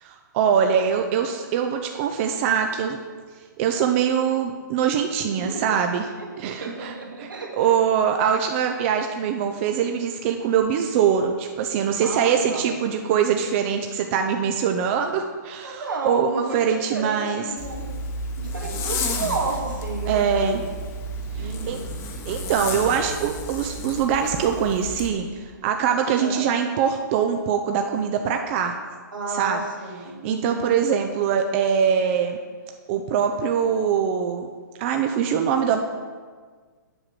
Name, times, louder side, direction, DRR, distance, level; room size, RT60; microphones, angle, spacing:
voice 1, 0.0-3.0 3.6-6.1 6.4-6.9 7.2-17.4 20.1-20.6 21.4-21.8 22.3-28.7 29.3-29.6 30.2-32.4 32.9-34.5 34.8-35.8, right 7 dB, 40° right, 4 dB, 0.6 m, -23 dB
voice 2, 5.3-5.8 6.2-6.3 6.6-7.8 8.2-8.4 12.0-12.7 15.6-17.8 18.4-20.7 21.4-21.8 26.2-26.5 29.1-30.7, right 3 dB, 85° right, -1 dB, 2.1 m, -32 dB
Zipper (clothing), 17.6-25.1, left 1 dB, 25° left, 1.1 m, -31 dB
7.9 x 5.9 x 6.5 m, 1.6 s
hypercardioid pair, 130°, 11 cm